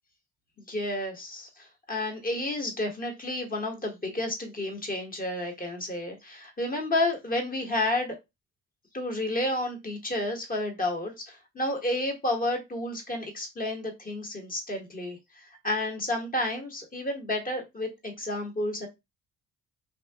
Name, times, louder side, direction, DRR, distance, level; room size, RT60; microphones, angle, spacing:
voice 1, 0.6-8.2 8.9-18.9, left 1 dB, 30° left, 1.3 m, -31 dB
2.7 x 2.4 x 3.5 m
cardioid pair, 90°, 30 cm